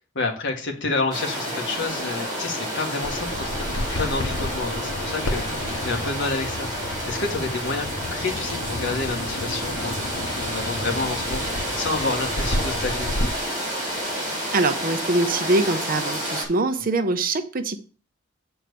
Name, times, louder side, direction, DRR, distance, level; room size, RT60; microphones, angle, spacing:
voice 1, 0.1-6.7 7.0-9.9 10.3-13.1, left 3 dB, 60° left, 1.7 m, -29 dB
sound 1, 1.1-16.4, equal, 20° right, 4.9 m, -30 dB
Bird vocalization bird call bird song, 3.0-13.3, left 1 dB, 85° left, 1.1 m, -31 dB
voice 2, 14.5-17.8, right 2 dB, 45° right, 0.7 m, -23 dB
8.0 x 4.4 x 6.9 m
head